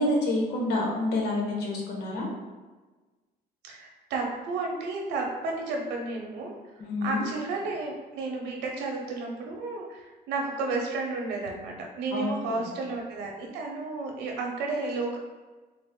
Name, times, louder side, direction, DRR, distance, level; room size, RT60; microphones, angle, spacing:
voice 1, 0.0-2.3 6.8-7.3 12.1-12.6, left 2 dB, 75° left, -1 dB, 1.0 m, -28 dB
voice 2, 3.6-6.6 7.0-15.2, right 3 dB, 85° right, 0 dB, 0.8 m, -32 dB
4.0 x 2.1 x 3.6 m, 1.3 s
cardioid pair, 110°, 17 cm